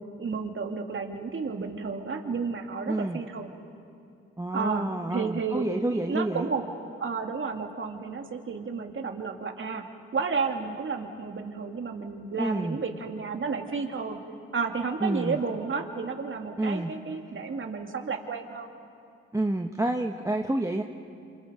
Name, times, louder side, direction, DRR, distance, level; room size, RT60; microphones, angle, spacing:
voice 1, 0.2-3.5 4.5-6.6 7.0-9.8 10.1-14.2 14.5-18.7, right 5 dB, 40° right, 3 dB, 2.6 m, -32 dB
voice 2, 2.9-3.2 4.4-6.5 12.4-12.8 15.0-15.4 16.6-16.9 19.3-20.8, right 1 dB, 10° right, 3 dB, 1.3 m, -28 dB
27.5 x 27.0 x 5.2 m, 2.5 s
supercardioid pair, 55°, 31 cm